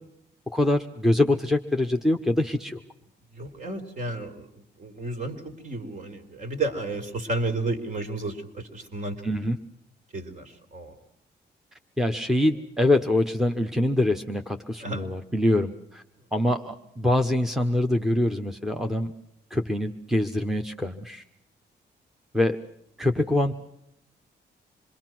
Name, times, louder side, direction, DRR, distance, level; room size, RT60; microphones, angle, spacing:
voice 1, 0.5-2.8 9.2-9.6 12.0-16.0 16.3-19.1 19.5-21.2 22.3-22.6 23.0-23.5, left 1 dB, ahead, 3 dB, 1.1 m, -24 dB
voice 2, 3.3-9.5 10.1-10.9 14.8-15.1, right 2 dB, 45° right, 6 dB, 3.7 m, -32 dB
27.0 x 22.0 x 6.1 m, 0.75 s
cardioid pair, 115°, 18 cm